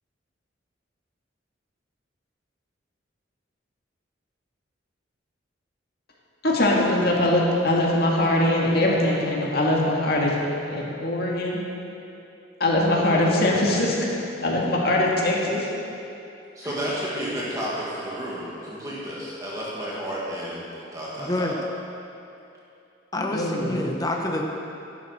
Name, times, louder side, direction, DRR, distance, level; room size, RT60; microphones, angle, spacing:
voice 1, 6.4-11.6 12.6-14.0 14.4-15.7 23.3-23.8, left 1 dB, 55° left, -3 dB, 1.9 m, -22 dB
voice 2, 16.6-20.7 20.9-21.5, equal, 15° right, -7 dB, 1.8 m, -31 dB
voice 3, 21.2-21.6 23.1-24.4, left 1 dB, 20° left, 1 dB, 1.0 m, -27 dB
12.0 x 11.0 x 4.3 m, 2.7 s
head